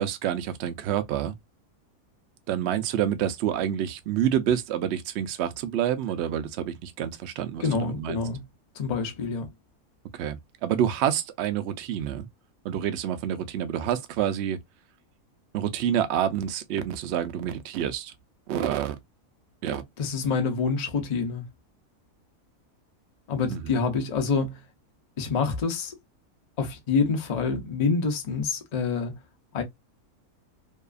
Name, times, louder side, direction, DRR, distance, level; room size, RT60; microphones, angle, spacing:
voice 1, 0.0-1.3 2.5-8.2 10.1-12.3 12.6-14.6 15.5-18.1 18.5-19.0 19.6-19.8 23.5-23.6, right 10 dB, 65° right, 0.7 m, -28 dB
voice 2, 7.6-8.4 8.8-9.5 20.0-21.4 23.3-24.6 25.2-26.0 26.6-29.1 29.5-29.6, left 5 dB, 50° left, 0.5 m, -27 dB
2.7 x 2.3 x 2.3 m
omnidirectional pair, 1.5 m